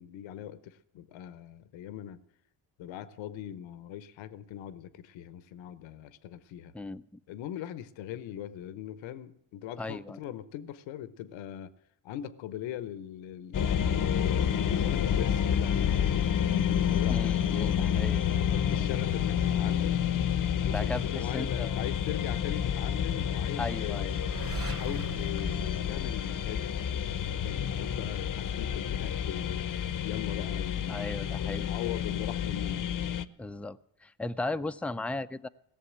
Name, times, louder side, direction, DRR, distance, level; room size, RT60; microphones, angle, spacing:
voice 1, 0.0-2.2 2.8-6.7 7.3-11.7 12.0-20.0 20.5-24.3 24.7-32.8, left 11 dB, 80° left, 15 dB, 1.0 m, -41 dB
voice 2, 9.8-10.2 17.1-18.2 20.6-21.0 21.3-21.7 23.6-24.1 30.9-31.7 33.4-35.5, left 2 dB, 5° left, 11 dB, 0.5 m, -36 dB
sound 1, 13.5-33.2, left 9 dB, 45° left, 0.8 m, -29 dB
sound 2, 24.1-26.9, right 3 dB, 30° right, 2.1 m, -40 dB
17.0 x 7.1 x 9.9 m, 0.77 s
supercardioid pair, 65°, 45 cm